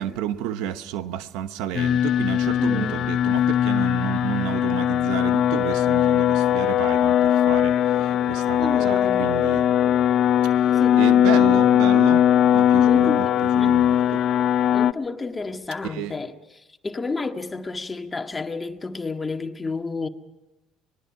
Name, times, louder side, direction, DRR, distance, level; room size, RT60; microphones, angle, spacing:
voice 1, 0.0-10.1 10.4-10.7 10.9-13.3 13.5-14.2 15.9-16.1, right 11 dB, 75° right, 1.1 m, -31 dB
sound 1, 1.7-14.9, left 10 dB, 55° left, 0.7 m, -20 dB
voice 2, 2.6-3.1 8.6-9.3 10.7-11.1 12.8-13.3 13.6-13.8 14.7-20.1, left 3 dB, 20° left, 1.8 m, -31 dB
25.0 x 20.5 x 6.0 m
supercardioid pair, 80°, 0 cm